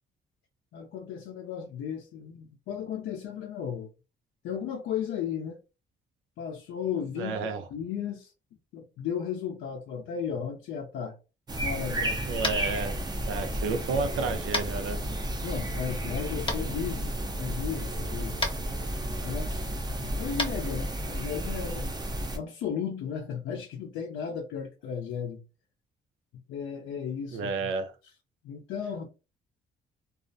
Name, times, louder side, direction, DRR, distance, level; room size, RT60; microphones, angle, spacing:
voice 1, 0.7-3.9 4.4-5.6 6.4-8.3 8.7-11.2 11.6-12.2 13.5-13.8 15.4-17.1 17.4-18.7 19.2-21.9 22.3-25.4 26.5-27.7 28.4-29.1, left 7 dB, 80° left, 0.5 m, -35 dB
voice 2, 7.2-7.6 12.3-13.0 13.3-15.0 27.3-27.9, right 4 dB, 90° right, 0.5 m, -31 dB
Open window and birds singing in the morning, 11.5-22.4, right 1 dB, 20° right, 0.5 m, -32 dB
Tap, 12.4-12.7 14.5-14.7 16.5-16.6 18.4-18.5 20.3-20.5, left 3 dB, 25° left, 0.6 m, -29 dB
2.3 x 2.0 x 2.6 m
cardioid pair, 90°, 20 cm